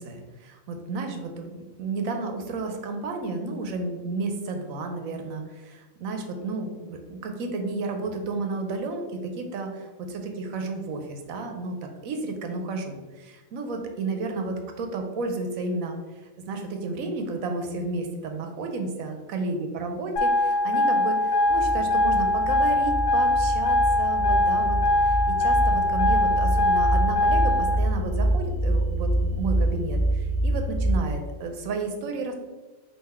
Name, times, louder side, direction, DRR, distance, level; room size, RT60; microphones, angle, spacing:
voice 1, 0.0-16.0 16.4-32.3, right 3 dB, 80° right, 4 dB, 1.0 m, -32 dB
sound 1, 20.2-27.8, left 1 dB, 50° left, 0.8 m, -22 dB
sound 2, 21.5-31.0, right 1 dB, 25° left, 1.4 m, -26 dB
3.9 x 2.8 x 4.2 m, 1.2 s
omnidirectional pair, 1.4 m